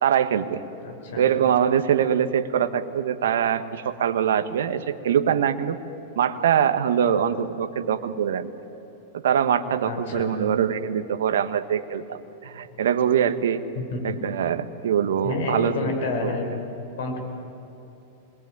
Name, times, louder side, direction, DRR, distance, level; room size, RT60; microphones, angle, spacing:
voice 1, 0.0-0.6 1.2-5.8 6.1-8.5 9.1-13.6 14.0-15.9 16.2-16.3, right 8 dB, 75° right, 10 dB, 1.5 m, -23 dB
voice 2, 0.8-1.3 9.8-10.4 13.9-14.2 15.2-16.5 17.0-17.2, left 3 dB, 70° left, 3 dB, 6.0 m, -29 dB
28.0 x 21.5 x 9.5 m, 2.9 s
hypercardioid pair, 105°, 0 cm